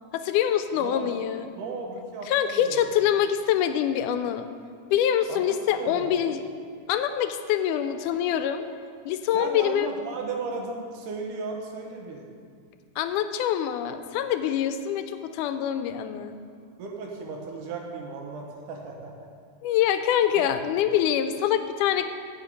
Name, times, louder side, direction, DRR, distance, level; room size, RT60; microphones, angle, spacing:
voice 1, 0.1-1.5 2.3-4.5 4.9-6.4 6.9-8.6 9.1-9.9 13.0-16.4 19.6-22.1, left 10 dB, 85° left, 9 dB, 2.0 m, -25 dB
voice 2, 0.7-1.1 1.6-2.9 5.3-6.1 9.3-12.3 16.8-19.3 20.3-20.5, right 4 dB, 80° right, 1 dB, 2.7 m, -35 dB
14.5 x 4.9 x 5.3 m, 2.2 s
omnidirectional pair, 3.6 m